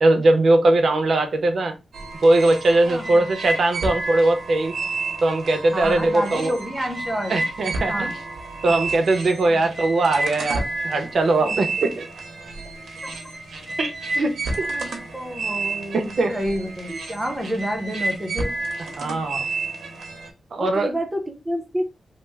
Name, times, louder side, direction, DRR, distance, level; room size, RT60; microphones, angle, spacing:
voice 1, 0.0-1.7 2.2-4.7 5.2-6.5 7.3-8.1 8.6-12.1 13.8-14.3 14.6-14.7 15.9-16.3 16.9-17.0 19.0-19.4 20.5-20.9, right 2 dB, 55° right, 6 dB, 0.6 m, -20 dB
sound 1, 1.9-20.3, right 2 dB, 85° right, 0.8 m, -30 dB
voice 2, 2.9-3.2 5.7-7.4 7.9-8.1 9.5-9.7 11.4-11.9 13.0-13.1 14.7-14.8 15.1-18.5 20.6-21.8, equal, 10° right, 4 dB, 0.6 m, -29 dB
3.1 x 2.0 x 3.3 m, 0.26 s
wide cardioid pair, 155°, 0 cm